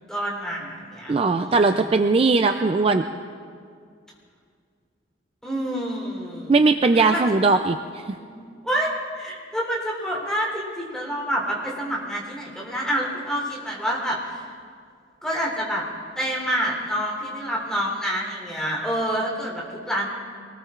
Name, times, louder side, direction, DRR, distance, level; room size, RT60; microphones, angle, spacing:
voice 1, 0.1-1.9 5.4-6.6 7.0-7.2 8.2-14.5 15.2-15.8 16.1-20.1, equal, 5° left, -3 dB, 3.4 m, -28 dB
voice 2, 1.1-3.0 6.5-8.0, right 3 dB, 30° right, 7 dB, 0.4 m, -19 dB
25.5 x 20.0 x 2.5 m, 2.2 s
head